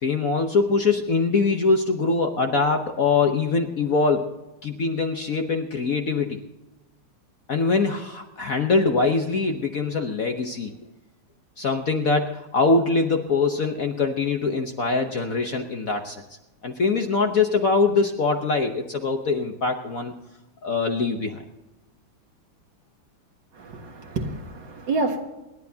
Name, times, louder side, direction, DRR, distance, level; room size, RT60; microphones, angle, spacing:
voice 1, 0.0-4.3 4.6-6.4 7.5-10.7 11.6-16.2 16.6-20.1 20.6-21.4, left 4 dB, 50° left, 4 dB, 1.1 m, -23 dB
voice 2, 23.6-25.2, right 3 dB, 60° right, 3 dB, 2.2 m, -28 dB
28.5 x 11.0 x 2.8 m, 1.0 s
omnidirectional pair, 2.3 m